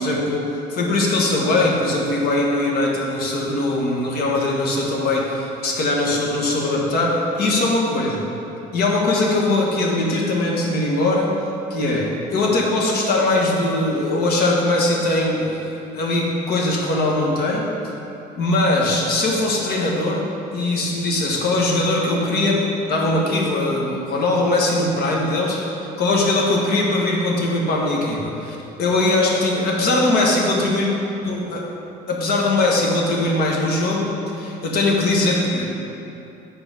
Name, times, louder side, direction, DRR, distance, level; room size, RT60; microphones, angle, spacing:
voice 1, 0.0-8.3 8.7-11.3 11.7-17.7 18.4-20.3 20.5-30.8 31.2-31.7 32.1-35.6, left 2 dB, 65° left, -2 dB, 1.4 m, -21 dB
7.4 x 4.4 x 5.5 m, 3.0 s
cardioid pair, 110°, 17 cm